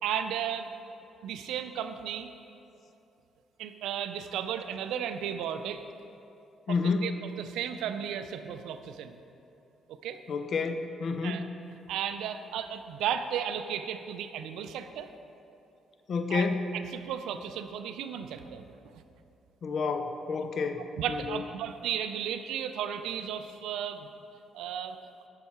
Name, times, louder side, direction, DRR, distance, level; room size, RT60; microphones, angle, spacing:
voice 1, 0.0-0.7 1.2-2.3 3.6-5.8 6.7-9.2 9.9-10.2 11.2-11.5 11.9-15.1 16.3-18.7 18.9-19.0 20.4-20.5 21.0-24.1 24.5-25.0, right 9 dB, 85° right, 9 dB, 0.4 m, -34 dB
voice 2, 6.7-7.1 10.3-11.4 16.1-16.6 19.6-21.4, left 4 dB, 55° left, 7 dB, 0.5 m, -30 dB
8.0 x 5.7 x 4.2 m, 2.7 s
cardioid pair, 90°, 0 cm